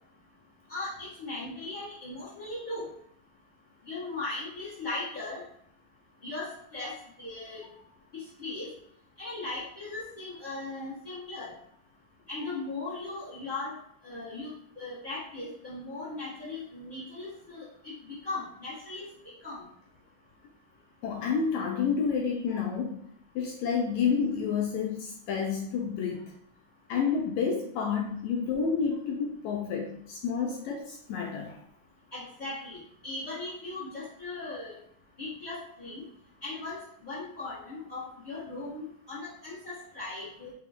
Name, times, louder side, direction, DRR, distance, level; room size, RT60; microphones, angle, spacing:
voice 1, 0.7-2.8 3.9-5.4 6.2-6.9 7.2-7.6 8.1-8.7 9.2-11.5 12.3-14.5 14.7-17.9 18.2-19.1 19.4-19.6 32.1-34.8 35.2-36.0 36.4-40.5, left 2 dB, 40° left, -9 dB, 0.6 m, -38 dB
voice 2, 21.0-23.0 23.3-26.2 26.9-31.6, left 6 dB, 80° left, 0 dB, 1.7 m, -29 dB
5.0 x 2.3 x 3.4 m, 0.67 s
omnidirectional pair, 3.6 m